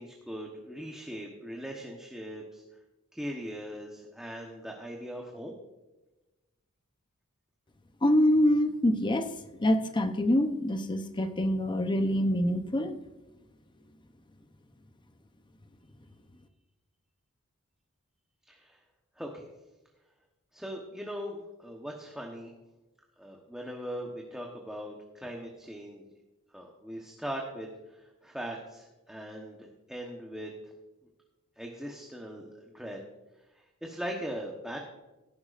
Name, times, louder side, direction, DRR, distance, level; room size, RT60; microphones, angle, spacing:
voice 1, 0.0-2.6 3.1-5.5 18.5-18.8 19.2-19.4 20.5-22.5 23.2-26.1 26.5-30.5 31.6-33.0 33.5-34.8, equal, 5° right, 0 dB, 1.1 m, -40 dB
voice 2, 8.0-9.3 9.6-13.0, left 1 dB, 20° left, 8 dB, 0.8 m, -25 dB
17.0 x 10.5 x 2.6 m, 1.1 s
head